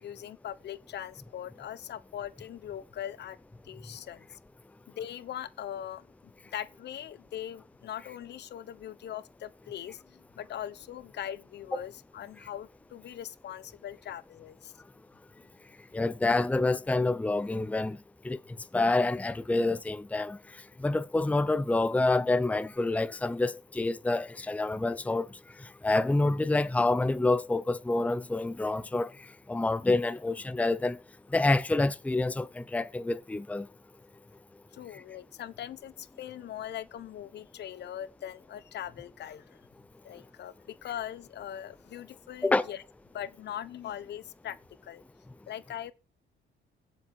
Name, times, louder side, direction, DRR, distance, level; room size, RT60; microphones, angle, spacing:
voice 1, 0.0-3.4 3.6-4.3 4.9-6.1 6.5-14.7 34.7-39.6 40.0-42.8 43.1-44.6 44.8-45.0 45.5-45.9, left 10 dB, 65° left, 1.0 m, -41 dB
voice 2, 15.9-18.0 18.2-18.4 18.7-20.4 20.8-25.3 25.8-29.1 29.5-31.0 31.3-33.7 42.4-42.7, left 2 dB, 5° left, 0.6 m, -27 dB
17.0 x 7.4 x 4.4 m
cardioid pair, 115°, 19 cm